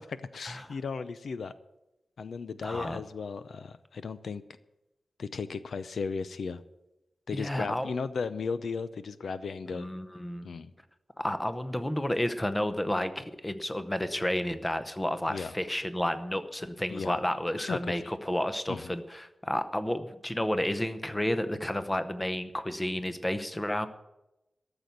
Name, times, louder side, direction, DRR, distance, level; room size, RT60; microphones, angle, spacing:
voice 1, 0.3-1.5 2.2-4.4 5.2-6.6 7.3-9.9 10.4-10.7 15.3-15.5 16.9-17.2 17.7-18.1 18.7-18.9, left 5 dB, 80° left, 13 dB, 0.6 m, -35 dB
voice 2, 2.6-3.0 7.3-7.9 9.7-10.5 11.2-23.9, left 1 dB, 10° left, 11 dB, 0.8 m, -31 dB
13.5 x 7.0 x 9.1 m, 0.94 s
wide cardioid pair, 155°, 0 cm